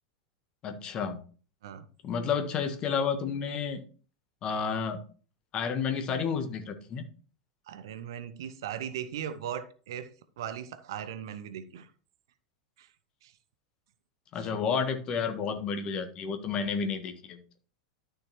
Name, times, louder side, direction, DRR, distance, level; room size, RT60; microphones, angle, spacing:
voice 1, 0.6-1.2 2.0-3.8 4.4-5.0 5.5-7.1 14.3-17.4, left 6 dB, 35° left, 1.4 m, -31 dB
voice 2, 7.7-10.1 10.4-11.9 12.8-12.9 13.2-13.3, right 9 dB, 60° right, 0.8 m, -38 dB
12.0 x 6.5 x 3.1 m
figure-of-eight pair, 85°, 3 cm